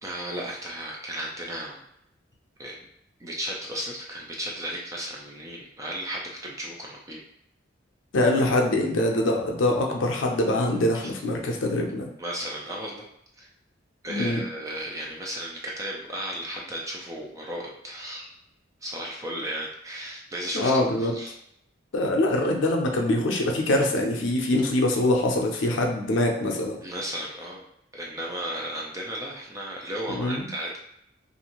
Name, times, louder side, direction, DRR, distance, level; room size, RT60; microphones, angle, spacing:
voice 1, 0.0-1.8 2.6-2.8 3.2-7.2 11.0-11.1 12.2-13.0 13.4-13.5 14.0-18.3 18.8-20.7 21.0-21.3 26.8-27.6 27.9-30.8, right 1 dB, 15° right, -2 dB, 0.4 m, -34 dB
voice 2, 8.1-12.1 14.1-14.4 20.5-21.1 21.9-26.8 30.1-30.4, left 1 dB, 75° left, 1 dB, 0.5 m, -24 dB
2.6 x 2.4 x 2.9 m, 0.74 s
head